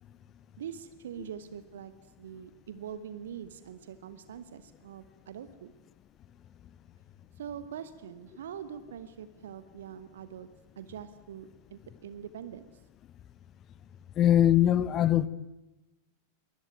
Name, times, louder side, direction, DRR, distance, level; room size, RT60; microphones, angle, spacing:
voice 1, 0.6-1.9 2.2-5.7 7.4-10.5 10.8-12.6, right 8 dB, 60° right, 1.2 m, -43 dB
voice 2, 14.2-15.3, left 11 dB, 30° left, 1.0 m, -22 dB
23.0 x 20.5 x 9.0 m
figure-of-eight pair, 90°, 0 cm